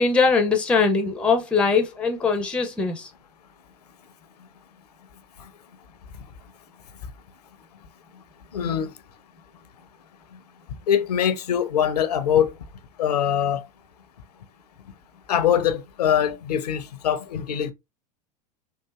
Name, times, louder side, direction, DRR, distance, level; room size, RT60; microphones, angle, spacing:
voice 1, 0.0-3.1, left 4 dB, 5° left, 0.4 m, -21 dB
voice 2, 8.5-8.9 10.9-12.5 13.0-13.6 15.3-17.7, left 9 dB, 70° left, 0.5 m, -23 dB
3.6 x 2.5 x 2.2 m
figure-of-eight pair, 85°, 21 cm